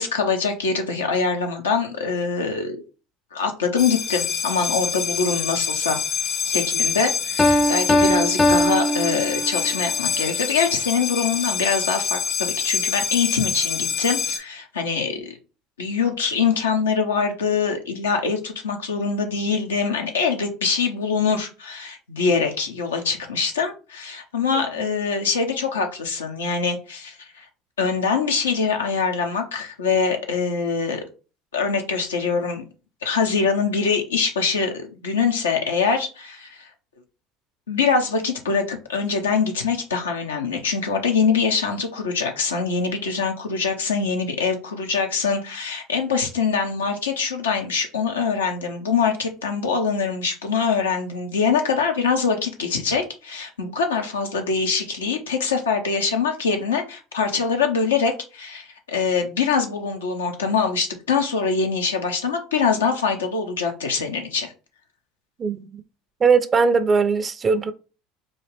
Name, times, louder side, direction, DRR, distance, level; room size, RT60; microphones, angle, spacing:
voice 1, 0.0-2.8 3.3-6.0 6.4-15.3 15.8-27.5 27.8-31.0 31.5-32.6 33.0-36.7 37.7-64.5, left 5 dB, 85° left, 0.7 m, -24 dB
sound 1, 3.8-14.4, left 6 dB, 55° left, 1.1 m, -26 dB
Piano, 7.4-9.8, left 1 dB, 15° left, 0.5 m, -20 dB
voice 2, 65.4-65.8 66.2-67.7, right 5 dB, 30° right, 0.5 m, -19 dB
4.0 x 2.4 x 3.3 m
hypercardioid pair, 70°, 0 cm